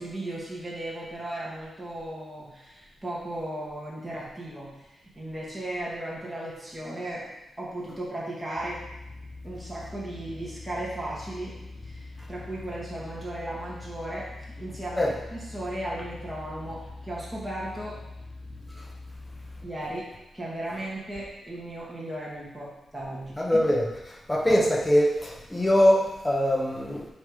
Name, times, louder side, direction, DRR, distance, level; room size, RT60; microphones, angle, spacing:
voice 1, 0.0-7.3 7.6-8.8 9.4-18.0 19.6-23.7, right 1 dB, 10° right, -6 dB, 2.0 m, -36 dB
sound 1, 8.6-19.7, left 2 dB, 30° left, 0.7 m, -43 dB
voice 2, 23.4-23.8 24.3-27.1, equal, 10° left, -3 dB, 1.0 m, -22 dB
9.4 x 3.3 x 4.8 m, 0.94 s
wide cardioid pair, 145°, 0 cm